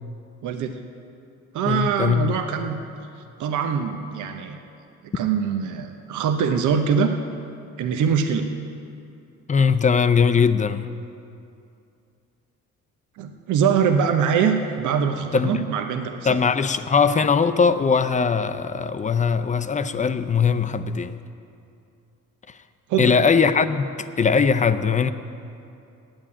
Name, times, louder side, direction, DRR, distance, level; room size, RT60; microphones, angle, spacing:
voice 1, 0.4-0.8 1.5-2.8 3.4-4.6 5.0-7.2 7.8-8.5 13.2-16.4 22.9-23.1, right 7 dB, 80° right, 6 dB, 0.8 m, -23 dB
voice 2, 1.7-2.4 5.1-5.2 9.5-10.9 15.3-15.7 16.2-21.2 23.0-25.1, left 5 dB, 25° left, 11 dB, 0.5 m, -20 dB
9.0 x 8.8 x 8.5 m, 2.6 s
cardioid pair, 90°, 30 cm